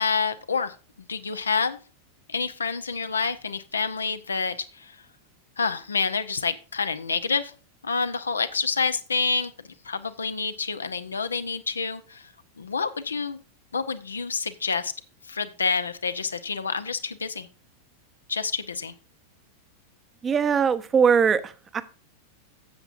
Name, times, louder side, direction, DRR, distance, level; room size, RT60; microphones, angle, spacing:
voice 1, 0.0-1.8 2.3-5.0 5.6-7.5 7.8-9.5 9.8-12.3 12.6-13.4 13.7-14.9 15.3-17.5 18.3-18.9, left 5 dB, 75° left, 11 dB, 0.8 m, -28 dB
voice 2, 20.2-21.8, right 6 dB, 20° right, 13 dB, 0.8 m, -21 dB
13.0 x 8.0 x 2.6 m, 0.34 s
figure-of-eight pair, 90°, 0 cm